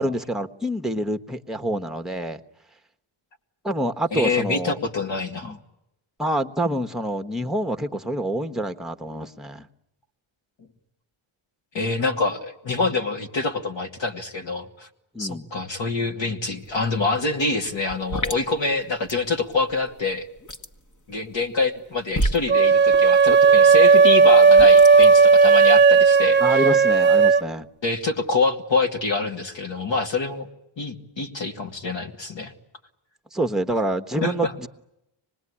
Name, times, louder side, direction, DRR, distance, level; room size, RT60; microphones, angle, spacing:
voice 1, 0.0-2.4 3.6-4.8 5.4-5.6 6.2-9.7 15.1-15.5 26.4-27.7 33.3-34.7, right 1 dB, ahead, 6 dB, 1.3 m, -27 dB
voice 2, 4.1-5.6 11.7-14.9 15.2-20.3 21.1-26.6 27.8-30.5 30.8-32.5 34.2-34.5, left 3 dB, 65° left, 4 dB, 2.7 m, -26 dB
sound 1, 16.6-16.8 17.1-25.8, right 1 dB, 35° left, 1.8 m, -31 dB
sound 2, 22.5-27.5, right 5 dB, 20° right, 1.1 m, -14 dB
25.5 x 20.0 x 10.0 m, 0.87 s
cardioid pair, 85°, 49 cm